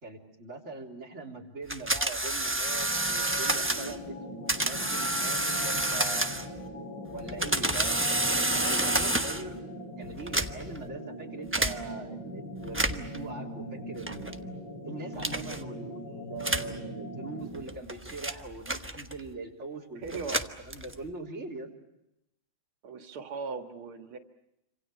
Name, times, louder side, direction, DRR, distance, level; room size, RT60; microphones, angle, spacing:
voice 1, 0.0-6.3 7.1-9.6 10.0-14.4 14.8-21.7, right 3 dB, 30° right, -1 dB, 3.9 m, -42 dB
sound 1, 1.7-4.0 4.5-6.6 7.2-9.5 10.2-10.8 11.5-11.8 12.6-13.2 14.1-14.4 15.2-15.6 16.4-16.8 17.5-19.3 20.1-21.1, right 1 dB, 15° right, 0.5 m, -29 dB
sound 2, 2.7-17.8, left 1 dB, 55° left, 4.9 m, -41 dB
voice 2, 19.9-20.4 22.8-24.2, right 4 dB, 90° right, 5 dB, 2.5 m, -38 dB
27.5 x 26.5 x 6.8 m, 0.87 s
omnidirectional pair, 2.3 m